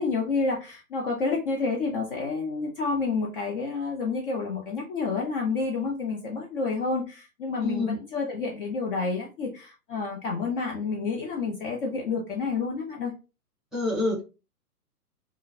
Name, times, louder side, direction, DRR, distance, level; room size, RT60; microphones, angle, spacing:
voice 1, 0.0-13.1, left 4 dB, 35° left, -1 dB, 0.7 m, -29 dB
voice 2, 7.6-8.0 13.7-14.2, left 2 dB, ahead, -3 dB, 1.2 m, -27 dB
3.7 x 2.2 x 2.5 m, 0.30 s
figure-of-eight pair, 115°, 46 cm